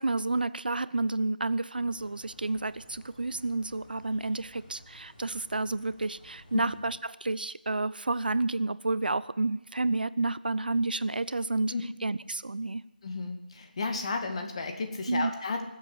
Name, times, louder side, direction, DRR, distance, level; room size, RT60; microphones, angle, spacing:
voice 1, 0.0-11.7 12.0-12.8 15.1-15.3, right 2 dB, 75° right, 17 dB, 0.6 m, -30 dB
sound 1, 1.8-6.9, equal, 10° left, 5.6 m, -55 dB
voice 2, 13.0-15.6, left 4 dB, 40° left, 5 dB, 2.0 m, -33 dB
19.5 x 8.1 x 8.1 m, 0.99 s
figure-of-eight pair, 160°, 5 cm